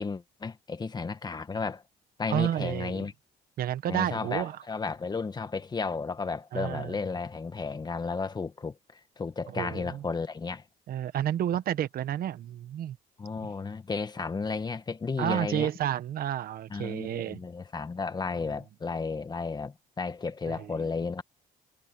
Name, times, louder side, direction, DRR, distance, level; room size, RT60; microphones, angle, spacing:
voice 1, 0.0-1.8 2.2-3.1 3.9-10.6 13.2-15.7 16.7-21.2, left 4 dB, 25° left, 1.8 m, -33 dB
voice 2, 2.3-3.1 3.6-4.6 6.5-6.9 9.5-10.0 10.9-13.0 15.2-17.4 20.5-20.8, right 11 dB, 60° right, 1.4 m, -30 dB
cardioid pair, 110°, 17 cm